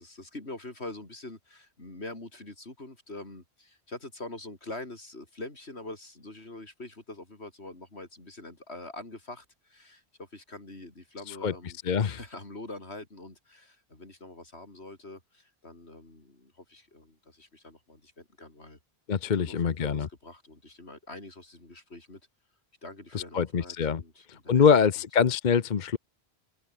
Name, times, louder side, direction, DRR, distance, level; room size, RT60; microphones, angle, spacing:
voice 1, 0.0-18.8 19.4-22.2 22.8-24.8, left 2 dB, 80° left, 5.1 m, -44 dB
voice 2, 11.9-12.2 19.1-20.1 23.1-24.0 24.3-26.0, left 6 dB, 50° left, 0.9 m, -24 dB
open air
omnidirectional pair, 1.1 m